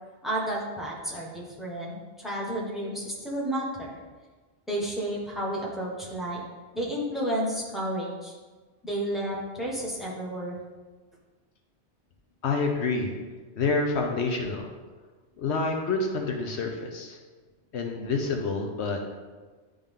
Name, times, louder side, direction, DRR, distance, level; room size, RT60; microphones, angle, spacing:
voice 1, 0.2-3.9 4.7-6.4 6.7-8.3 8.8-10.6, right 1 dB, ahead, -5 dB, 1.3 m, -31 dB
voice 2, 12.4-13.1 13.6-14.7 15.4-17.2 17.7-19.1, left 3 dB, 70° left, 2 dB, 1.0 m, -28 dB
10.5 x 3.5 x 3.7 m, 1.4 s
omnidirectional pair, 1.2 m